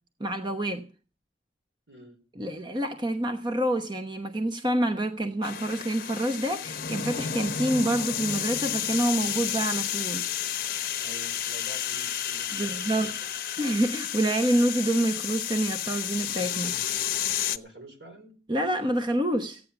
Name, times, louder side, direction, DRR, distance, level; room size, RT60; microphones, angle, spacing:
voice 1, 0.2-0.9 2.4-10.2 12.5-13.1 13.6-16.7 18.5-19.6, right 1 dB, 25° right, 1.0 m, -27 dB
voice 2, 1.9-2.2 11.0-13.3 17.3-18.4, right 1 dB, 70° right, 4.7 m, -48 dB
sound 1, 5.4-17.6, left 10 dB, 55° left, 0.9 m, -31 dB
15.0 x 9.5 x 7.0 m
head